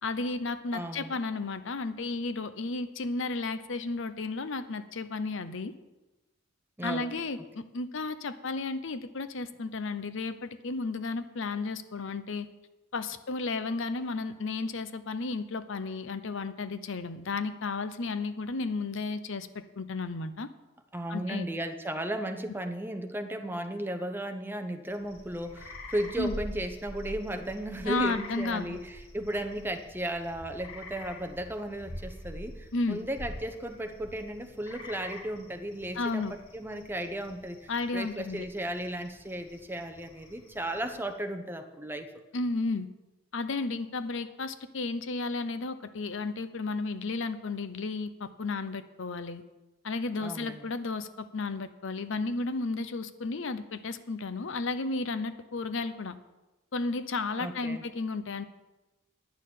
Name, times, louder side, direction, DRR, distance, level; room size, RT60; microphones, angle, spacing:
voice 1, 0.0-5.7 6.8-12.5 12.9-19.5 19.8-20.5 21.1-21.5 26.2-26.3 27.8-28.8 32.7-33.0 35.9-36.3 37.7-38.4 42.3-42.9 43.3-49.4 49.8-56.1 56.7-58.5, left 3 dB, 65° left, 12 dB, 0.7 m, -33 dB
voice 2, 0.7-1.2 6.8-7.1 20.9-42.1 50.2-50.7 57.4-57.8, right 1 dB, 10° right, 6 dB, 0.8 m, -35 dB
sound 1, 24.9-41.1, left 1 dB, 85° left, 2.3 m, -46 dB
10.5 x 6.6 x 9.2 m, 1.1 s
head